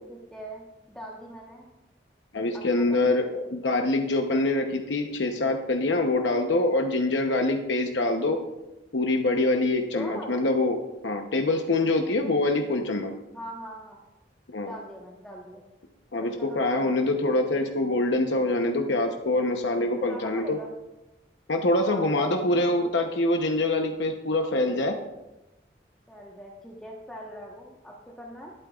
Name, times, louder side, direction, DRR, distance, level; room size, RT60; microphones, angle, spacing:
voice 1, 0.1-1.7 2.5-3.1 9.9-10.4 13.3-14.0 14.6-15.6 16.4-16.7 20.0-20.7 21.8-22.9 26.1-28.5, equal, 5° left, -4 dB, 1.2 m, -41 dB
voice 2, 2.3-8.4 8.9-10.8 11.0-13.1 14.5-14.7 16.1-20.6 21.5-25.0, left 2 dB, 90° left, 4 dB, 0.9 m, -25 dB
20.5 x 8.7 x 2.4 m, 1.0 s
head